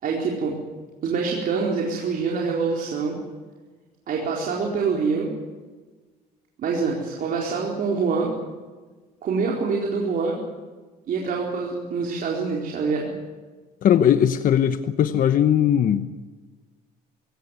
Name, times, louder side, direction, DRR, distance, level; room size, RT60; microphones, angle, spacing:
voice 1, 0.0-0.6 1.0-3.2 4.1-5.3 6.6-8.3 9.2-10.4 11.1-13.1 15.1-15.2, right 4 dB, 55° right, -2 dB, 4.3 m, -25 dB
voice 2, 13.8-16.2, left 9 dB, 55° left, 10 dB, 1.0 m, -19 dB
23.0 x 17.5 x 9.5 m, 1.4 s
cardioid pair, 110°, 17 cm